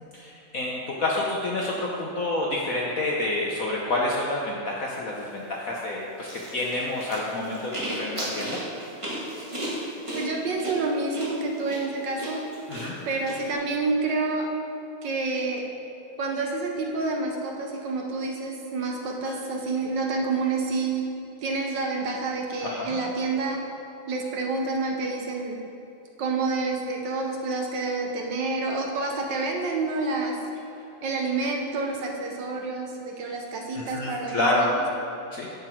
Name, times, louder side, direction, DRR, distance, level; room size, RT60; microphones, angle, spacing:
voice 1, 0.1-8.6 12.7-13.0 22.6-23.0 33.7-34.7 35.3-35.5, left 2 dB, 60° left, -3 dB, 0.9 m, -28 dB
sound 1, 6.2-13.3, right 1 dB, 15° right, 1.8 m, -35 dB
voice 2, 10.1-12.4 13.1-14.5 15.0-15.7 16.2-21.1 21.4-23.6 24.1-25.6 26.2-30.4 31.0-34.7, right 3 dB, 65° right, 1 dB, 1.3 m, -28 dB
10.5 x 5.9 x 4.5 m, 2.9 s
omnidirectional pair, 2.4 m